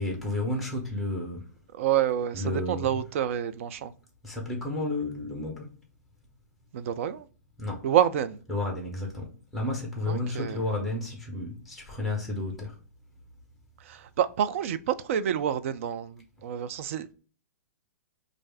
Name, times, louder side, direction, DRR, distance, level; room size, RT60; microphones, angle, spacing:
voice 1, 0.0-1.5 2.3-2.9 4.2-5.8 7.6-7.9 8.5-12.8, left 2 dB, ahead, 0.9 m, -32 dB
voice 2, 1.7-3.9 6.7-7.3 7.8-8.4 10.1-10.6 13.9-17.1, right 10 dB, 50° right, 0.4 m, -28 dB
3.2 x 2.5 x 3.3 m
figure-of-eight pair, 115°, 9 cm